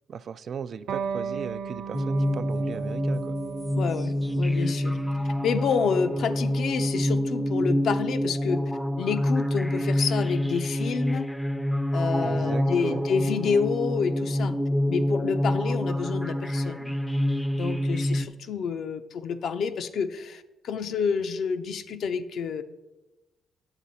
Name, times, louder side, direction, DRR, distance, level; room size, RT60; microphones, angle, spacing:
voice 1, 0.1-3.4 12.2-13.0, right 7 dB, 55° right, 15 dB, 0.3 m, -37 dB
Electric guitar, 0.9-8.0, right 6 dB, 80° right, 0.8 m, -37 dB
sound 1, 1.9-18.3, left 1 dB, 5° left, 0.5 m, -27 dB
voice 2, 3.8-5.0 5.4-8.6 9.0-11.3 11.9-14.6 14.9-17.0 17.5-22.6, left 6 dB, 65° left, 9 dB, 0.6 m, -29 dB
9.0 x 7.4 x 4.1 m, 1.1 s
cardioid pair, 90°, 0 cm